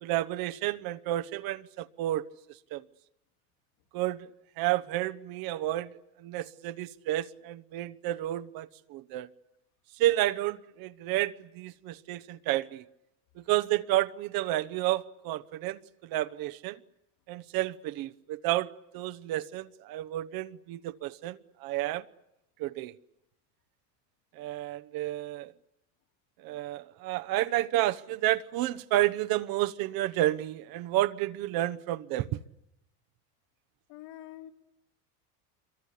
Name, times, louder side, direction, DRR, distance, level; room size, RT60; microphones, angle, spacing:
voice 1, 0.0-2.3 2.7-2.8 3.9-4.3 4.6-9.3 10.0-12.8 13.4-16.8 17.3-22.0 22.6-22.9 24.4-25.5 26.4-32.4, right 15 dB, 50° right, 1.1 m, -31 dB
voice 2, 33.9-34.5, left 13 dB, 70° left, 4.1 m, -45 dB
26.0 x 23.5 x 8.4 m
supercardioid pair, 125°, 44 cm